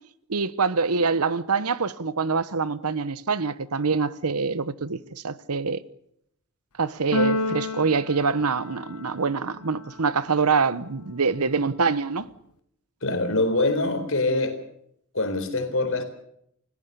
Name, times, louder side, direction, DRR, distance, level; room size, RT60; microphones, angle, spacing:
voice 1, 0.3-5.8 6.8-12.3, right 4 dB, 85° right, 1.0 m, -25 dB
Keyboard (musical), 7.1-9.2, left 1 dB, 85° left, 1.2 m, -28 dB
voice 2, 13.0-14.6 15.1-16.0, left 2 dB, 60° left, 4.2 m, -24 dB
29.5 x 16.0 x 6.9 m
head